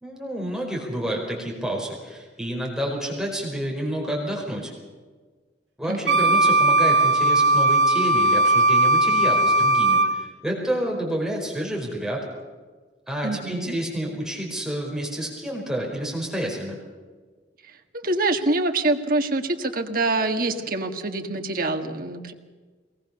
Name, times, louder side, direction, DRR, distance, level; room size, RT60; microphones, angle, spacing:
voice 1, 0.0-4.7 5.8-12.2 13.1-16.8, right 1 dB, 5° right, -2 dB, 4.7 m, -29 dB
Wind instrument woodwind instrument, 6.1-10.1, right 2 dB, 85° right, 2.3 m, -18 dB
voice 2, 13.2-13.8 17.6-22.3, right 2 dB, 50° right, 5 dB, 1.8 m, -25 dB
22.5 x 19.5 x 6.8 m, 1.4 s
head